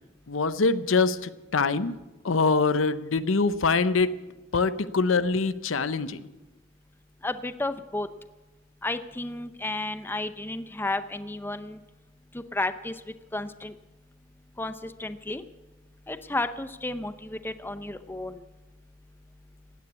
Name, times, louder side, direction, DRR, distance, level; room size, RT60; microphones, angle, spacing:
voice 1, 0.3-1.9 2.2-4.1 4.5-6.3, left 4 dB, 90° left, 13 dB, 0.7 m, -24 dB
voice 2, 7.2-8.1 8.8-11.8 12.3-12.9 13.3-13.7 14.6-15.4 16.1-18.4, left 2 dB, 10° left, 11 dB, 0.6 m, -32 dB
16.5 x 9.9 x 8.2 m, 1.1 s
head